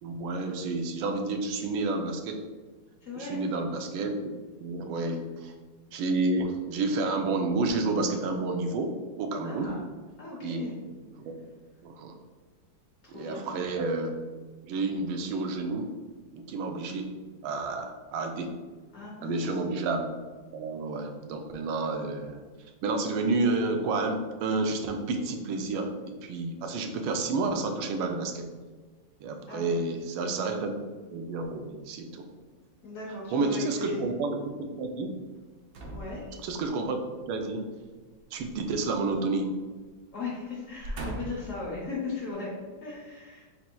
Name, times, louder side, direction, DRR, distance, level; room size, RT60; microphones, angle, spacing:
voice 1, 0.0-2.4 3.2-4.2 4.6-5.5 5.9-9.8 10.4-10.7 10.9-11.0 11.8-12.2 13.1-14.1 14.6-15.9 16.3-17.1 17.4-18.5 19.2-20.1 20.5-22.4 22.8-28.5 29.2-30.7 31.1-32.3 33.3-35.1 36.4-37.0 37.3-37.6 38.3-39.5, right 3 dB, 90° right, 4 dB, 1.4 m, -30 dB
voice 2, 3.0-3.4 9.4-9.8 10.2-10.7 13.0-13.5 18.9-19.6 29.5-29.8 30.3-30.4 32.8-34.0 35.9-36.2 40.1-42.5 42.8-43.5, left 3 dB, 55° left, -4 dB, 0.9 m, -37 dB
sound 1, 35.7-36.8 38.4-39.5 39.8-40.0 40.6-41.6 42.2-42.3, right 1 dB, 65° right, 1.1 m, -40 dB
4.4 x 4.0 x 2.2 m, 1.4 s
omnidirectional pair, 2.2 m